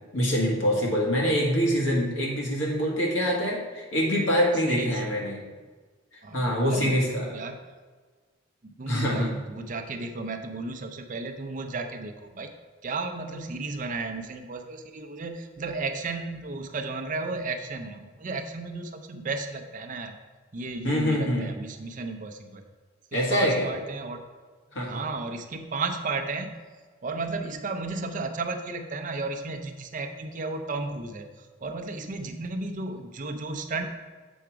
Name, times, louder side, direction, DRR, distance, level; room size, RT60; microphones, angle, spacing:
voice 1, 0.1-5.4 6.3-7.3 8.9-9.3 20.8-21.5 23.1-23.7 24.7-24.9, equal, 70° left, -2 dB, 1.8 m, -25 dB
voice 2, 4.6-5.0 6.2-7.0 7.3-7.6 8.6-12.5 12.8-20.2 20.5-22.6 23.1-24.2 24.8-26.5 27.0-33.9, right 3 dB, 40° right, 6 dB, 0.6 m, -34 dB
7.1 x 4.9 x 4.6 m, 1.4 s
head